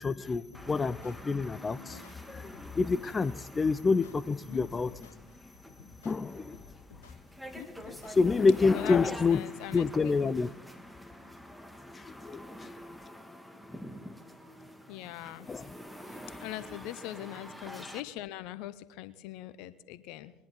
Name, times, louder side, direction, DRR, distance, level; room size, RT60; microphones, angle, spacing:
voice 1, 0.0-2.0 2.3-4.9 6.0-6.6 8.1-9.4 9.7-10.5 11.9-12.7 15.5-15.7, left 4 dB, 25° left, 14 dB, 0.4 m, -28 dB
sound 1, 0.5-8.5, left 5 dB, 75° left, 1.3 m, -54 dB
sound 2, 0.5-18.0, equal, ahead, 1.5 m, -47 dB
voice 2, 7.5-8.0 8.7-10.1 14.9-15.5 16.4-20.3, left 14 dB, 60° left, 15 dB, 0.7 m, -42 dB
21.0 x 10.5 x 4.1 m, 0.99 s
figure-of-eight pair, 65°, 0 cm